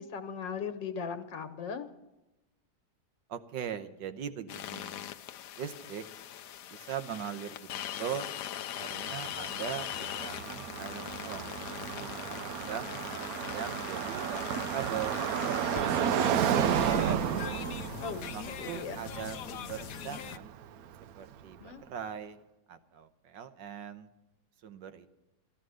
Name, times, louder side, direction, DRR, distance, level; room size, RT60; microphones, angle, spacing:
voice 1, 0.0-1.9 18.0-19.1 21.6-21.8, left 6 dB, 85° left, 9 dB, 1.8 m, -38 dB
voice 2, 3.3-5.1 5.6-6.0 6.7-8.3 8.7-11.6 12.0-13.0 13.5-15.2 15.8-17.3 18.3-20.5 21.2-22.4 22.7-24.1 24.6-25.1, right 8 dB, 85° right, 10 dB, 1.6 m, -40 dB
sound 1, 4.5-20.4, left 11 dB, 65° left, 0.9 m, -41 dB
Car passing by, 9.1-21.1, right 9 dB, 65° right, 0.9 m, -32 dB
14.0 x 11.5 x 6.3 m, 0.98 s
omnidirectional pair, 1.9 m